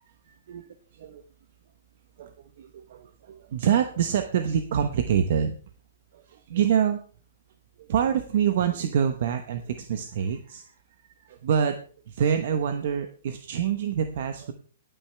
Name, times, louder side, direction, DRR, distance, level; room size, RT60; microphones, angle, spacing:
voice 1, 2.2-5.6 6.1-7.0 7.8-10.7 11.2-14.5, right 8 dB, 50° right, 8 dB, 1.0 m, -26 dB
21.5 x 9.1 x 3.3 m, 0.42 s
hypercardioid pair, 170°, 0 cm